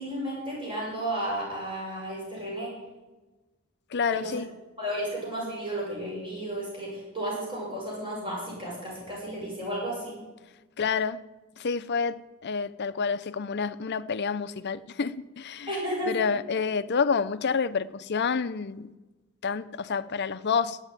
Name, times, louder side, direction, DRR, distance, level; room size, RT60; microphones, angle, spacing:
voice 1, 0.0-2.7 4.1-4.4 4.8-10.2 15.7-16.3, right 1 dB, 25° right, 6.3 m, -33 dB
voice 2, 3.9-4.5 10.8-11.2 11.6-15.7 16.1-18.9 19.4-20.8, left 5 dB, 55° left, 0.6 m, -28 dB
13.5 x 9.0 x 9.1 m
head